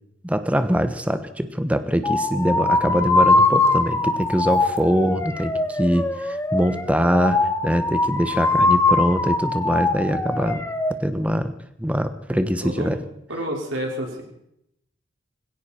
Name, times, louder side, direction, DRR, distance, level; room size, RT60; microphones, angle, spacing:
voice 1, 0.2-10.6 11.0-11.5 11.8-13.0, equal, 5° right, 9 dB, 1.0 m, -23 dB
sound 1, 2.0-10.9, left 3 dB, 15° left, 1.2 m, -22 dB
voice 2, 12.3-12.9 13.3-14.2, equal, 85° right, 0 dB, 5.0 m, -29 dB
19.0 x 17.0 x 4.4 m, 0.77 s
head